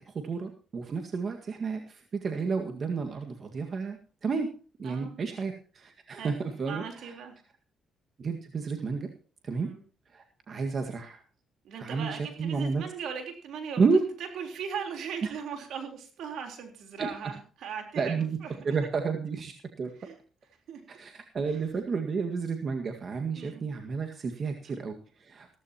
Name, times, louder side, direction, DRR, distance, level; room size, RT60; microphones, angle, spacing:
voice 1, 0.0-4.5 4.8-7.1 8.2-9.1 9.4-9.7 10.1-11.2 11.8-12.8 13.8-14.1 15.2-15.3 17.0-17.1 18.0-18.4 18.6-19.5 19.8-19.9 20.9-25.5, right 5 dB, 45° right, 4 dB, 1.8 m, -31 dB
voice 2, 4.8-5.2 6.1-6.3 6.7-7.4 9.6-9.8 11.6-13.8 14.3-18.6 20.0-20.1 20.7-20.8 23.3-23.7, right 7 dB, 75° right, 4 dB, 3.8 m, -39 dB
16.0 x 14.5 x 2.9 m, 0.39 s
cardioid pair, 90°, 0 cm